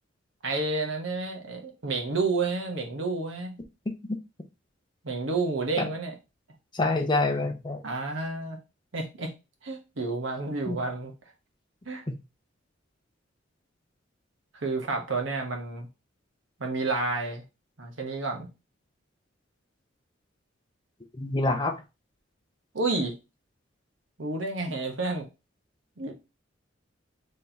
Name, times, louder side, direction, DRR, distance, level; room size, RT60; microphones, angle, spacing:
voice 1, 0.4-3.6 5.0-6.1 7.8-8.6 8.9-9.3 9.6-11.1 11.9-12.0 14.6-15.9 16.6-17.4 17.8-18.5 22.7-23.1 24.2-25.3 26.0-26.1, right 3 dB, 75° right, 3 dB, 1.1 m, -30 dB
voice 2, 6.7-7.8 10.7-10.8 12.1-12.2 21.1-21.8, left 2 dB, 25° left, 5 dB, 0.6 m, -26 dB
4.1 x 3.3 x 2.8 m, 0.27 s
head